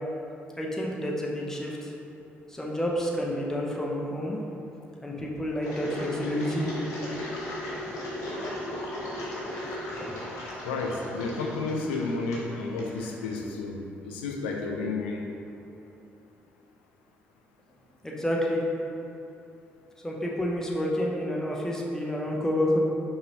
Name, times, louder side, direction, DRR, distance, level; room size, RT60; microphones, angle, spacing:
voice 1, 0.6-1.9 2.5-4.4 5.0-6.7 10.0-10.1 18.0-18.6 20.0-22.8, left 1 dB, 10° left, -3 dB, 0.8 m, -29 dB
Engine, 5.6-13.4, left 1 dB, 65° left, 0.9 m, -37 dB
voice 2, 10.6-15.2, left 3 dB, 80° left, 2 dB, 0.4 m, -31 dB
5.0 x 3.1 x 3.0 m, 2.8 s
figure-of-eight pair, 45°, 6 cm